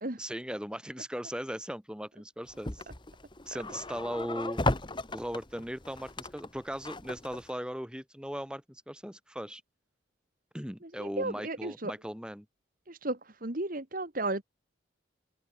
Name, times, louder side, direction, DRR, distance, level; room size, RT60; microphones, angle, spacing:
voice 1, 0.2-2.9 3.5-4.6 5.1-9.6 10.5-12.5, equal, 5° right, 7.0 m, -38 dB
sound 1, 2.5-7.5, left 2 dB, 25° left, 1.6 m, -35 dB
voice 2, 11.0-11.9 12.9-14.4, right 2 dB, 45° right, 2.1 m, -34 dB
open air
head